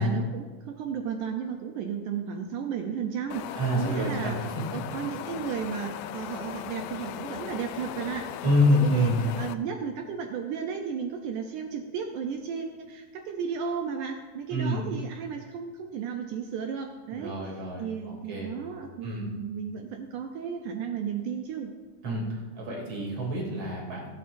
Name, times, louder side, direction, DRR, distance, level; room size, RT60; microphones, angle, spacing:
voice 1, 0.0-8.3 8.7-17.4 17.8-21.7, right 7 dB, 75° right, 4 dB, 1.9 m, -34 dB
Wind, 3.3-9.5, left 11 dB, 85° left, 1.8 m, -37 dB
voice 2, 3.5-4.4 8.4-9.2 14.5-14.9 17.1-18.5 19.0-19.3 22.0-24.1, left 1 dB, 45° right, -3 dB, 3.9 m, -27 dB
23.0 x 8.9 x 2.7 m, 1.4 s
omnidirectional pair, 4.2 m